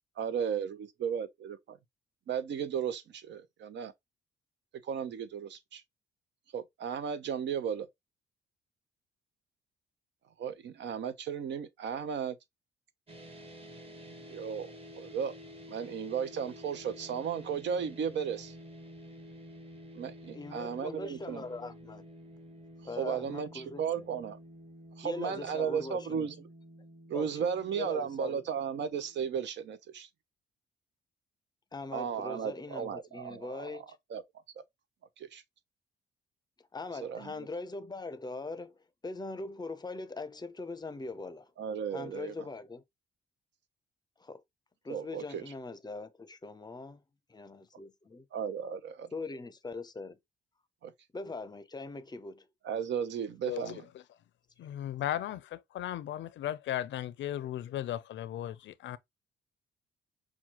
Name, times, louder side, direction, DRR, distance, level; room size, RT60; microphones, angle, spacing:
voice 1, 0.2-1.8 2.3-3.9 4.8-5.8 6.5-7.9 10.4-12.4 14.3-14.7 15.0-15.3 15.7-18.5 20.0-21.4 23.0-24.4 25.0-26.3 27.1-30.1 31.9-33.7 34.1-34.2 34.6-34.7 35.2-35.4 37.0-37.3 41.6-42.3 44.9-45.4 48.3-49.1 50.8-50.9 52.6-53.8, right 7 dB, 65° right, 0.7 m, -35 dB
sound 1, 13.1-29.4, equal, 30° right, 1.3 m, -50 dB
voice 2, 20.2-22.0 22.8-24.0 25.0-26.3 27.1-27.5 27.8-28.4 31.7-34.0 36.7-38.8 39.0-41.5 41.9-42.8 44.2-44.4 44.8-47.0 47.3-48.2 49.1-50.2 51.1-52.5, left 3 dB, 20° left, 0.6 m, -41 dB
voice 3, 53.4-53.8 54.6-59.0, left 12 dB, 70° left, 0.5 m, -36 dB
5.9 x 2.3 x 2.9 m
cardioid pair, 90°, 20 cm